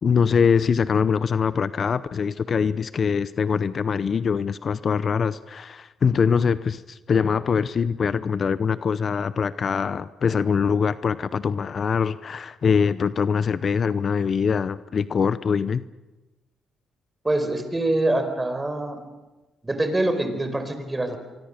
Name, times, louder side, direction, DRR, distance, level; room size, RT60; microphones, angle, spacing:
voice 1, 0.0-15.8, left 6 dB, 45° left, 15 dB, 0.7 m, -23 dB
voice 2, 17.2-19.0 19.6-21.2, right 2 dB, 15° right, 8 dB, 4.7 m, -24 dB
24.5 x 24.0 x 6.7 m, 1.1 s
cardioid pair, 90°, 0 cm